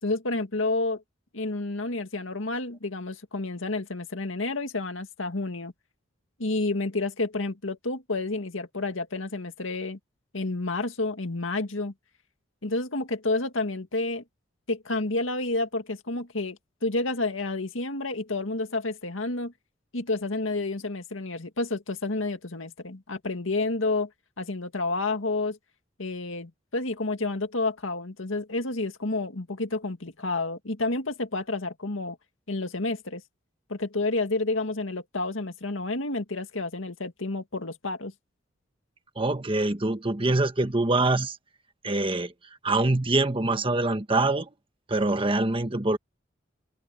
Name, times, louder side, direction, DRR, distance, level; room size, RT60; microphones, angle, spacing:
voice 1, 0.0-1.0 1.3-5.7 6.4-10.0 10.3-11.9 12.6-14.2 14.7-19.5 19.9-24.1 24.4-25.6 26.0-32.2 32.5-33.2 33.7-38.1, left 2 dB, 90° left, 2.0 m, -30 dB
voice 2, 39.1-41.4 41.8-42.3 42.6-44.5 44.9-46.0, right 2 dB, 25° right, 1.4 m, -24 dB
head